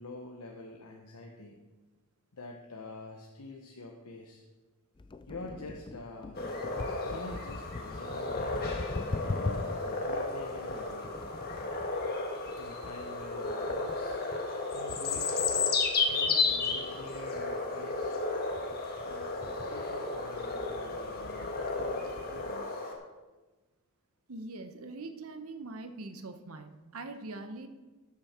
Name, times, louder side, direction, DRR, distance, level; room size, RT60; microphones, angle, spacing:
voice 1, 0.0-1.6 2.3-4.4 5.3-6.4 7.0-8.7 9.2-11.3 12.6-14.2 14.7-15.6 16.1-18.2 19.0-22.8, left 2 dB, 85° left, 0 dB, 0.9 m, -46 dB
sound 1, 5.0-22.6, left 3 dB, 20° left, 0.3 m, -43 dB
sound 2, 6.3-22.9, left 3 dB, 45° left, 1.4 m, -33 dB
voice 2, 24.3-27.7, right 2 dB, 65° right, 8 dB, 0.9 m, -42 dB
13.5 x 6.3 x 4.3 m, 1.2 s
head